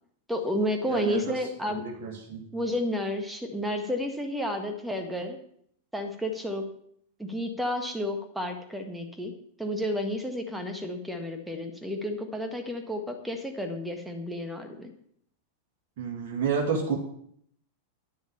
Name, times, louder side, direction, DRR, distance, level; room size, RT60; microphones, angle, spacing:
voice 1, 0.3-1.8 2.5-5.4 5.9-6.6 7.2-9.3 9.6-14.9, left 1 dB, 5° right, 5 dB, 1.7 m, -31 dB
voice 2, 0.9-1.3 1.7-2.4 16.0-17.0, right 6 dB, 50° right, -1 dB, 2.3 m, -30 dB
10.0 x 7.1 x 7.0 m, 0.67 s
figure-of-eight pair, 90°, 0 cm